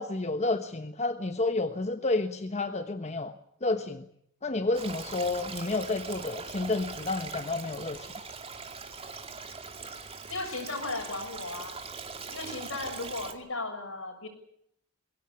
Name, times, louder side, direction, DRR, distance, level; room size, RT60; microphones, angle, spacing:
voice 1, 0.0-3.3 3.6-4.0 4.4-8.1, left 2 dB, 35° left, 8 dB, 1.2 m, -30 dB
Stream, 4.7-13.3, right 4 dB, 30° right, 2.5 m, -41 dB
voice 2, 10.3-11.8 12.3-14.3, left 2 dB, 70° left, 7 dB, 6.5 m, -36 dB
22.0 x 17.0 x 9.8 m, 0.72 s
head